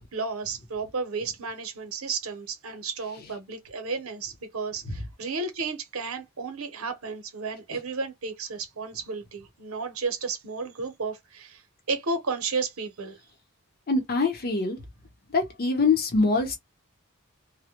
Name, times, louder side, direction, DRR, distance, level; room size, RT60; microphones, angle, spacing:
voice 1, 0.0-11.6 11.9-13.2, right 4 dB, 70° right, 0.7 m, -33 dB
voice 2, 13.9-14.8 15.3-16.6, left 3 dB, 45° left, 0.8 m, -24 dB
2.1 x 2.1 x 2.9 m
head